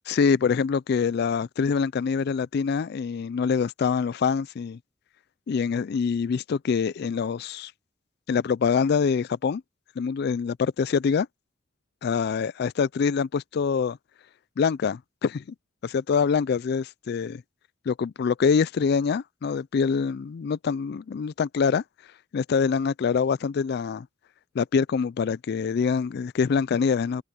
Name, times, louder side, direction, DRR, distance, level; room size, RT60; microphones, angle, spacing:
voice 1, 0.1-4.8 5.5-7.7 8.3-9.6 10.0-11.3 12.0-14.0 14.6-15.4 15.8-17.4 17.9-21.8 22.3-24.1 24.6-27.2, left 6 dB, 55° left, 0.4 m, -25 dB
head